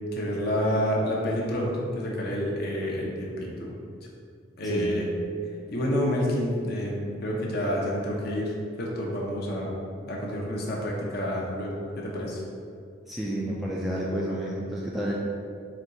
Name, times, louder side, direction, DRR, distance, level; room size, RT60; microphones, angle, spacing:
voice 1, 0.1-3.7 4.6-5.0 5.7-8.5 8.8-12.4, equal, 50° left, -3 dB, 0.7 m, -29 dB
voice 2, 4.6-5.0 13.1-15.1, equal, ahead, -6 dB, 0.3 m, -30 dB
4.3 x 2.3 x 3.8 m, 2.3 s
head